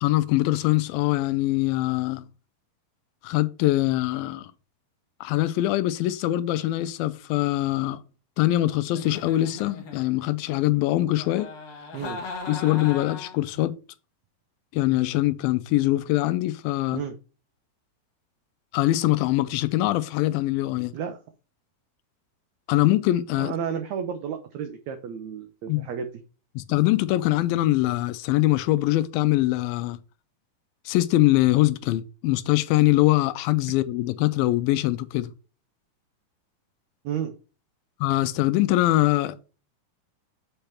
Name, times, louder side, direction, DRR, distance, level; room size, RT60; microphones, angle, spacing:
voice 1, 0.0-2.2 3.2-4.5 5.2-8.0 8.4-11.5 12.5-13.7 14.7-17.0 18.7-20.9 22.7-23.5 25.7-25.9 26.6-30.0 30.9-35.3 38.0-39.4, left 16 dB, 85° left, 2.4 m, -23 dB
Giggle, 8.9-10.4 11.1-13.5, left 4 dB, 50° left, 1.7 m, -38 dB
voice 2, 23.4-26.1 37.0-37.4, right 8 dB, 85° right, 1.5 m, -32 dB
7.9 x 3.4 x 5.7 m
omnidirectional pair, 4.1 m